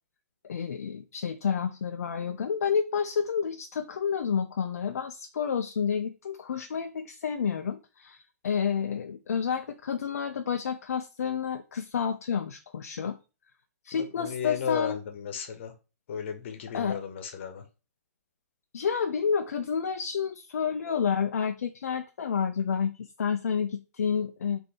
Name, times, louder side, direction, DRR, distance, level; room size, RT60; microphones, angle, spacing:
voice 1, 0.5-13.2 13.8-15.0 16.7-17.0 18.7-24.6, left 7 dB, 60° left, 0.5 m, -30 dB
voice 2, 13.9-15.7 16.1-17.6, left 7 dB, 45° left, 1.0 m, -35 dB
3.9 x 2.8 x 4.6 m
figure-of-eight pair, 125°, 9 cm